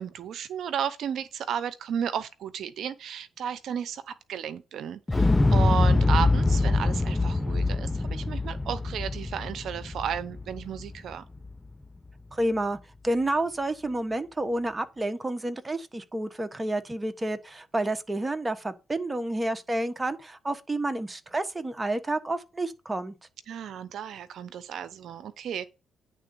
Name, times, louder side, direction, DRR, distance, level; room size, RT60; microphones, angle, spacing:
voice 1, 0.0-11.2 23.5-25.7, right 8 dB, 70° right, 0.7 m, -33 dB
Explosion, 5.1-11.1 11.4-11.5, left 2 dB, 15° left, 0.5 m, -24 dB
voice 2, 12.3-12.8 13.0-23.1, right 1 dB, 20° right, 1.2 m, -29 dB
10.0 x 3.8 x 6.8 m
cardioid pair, 90°, 0 cm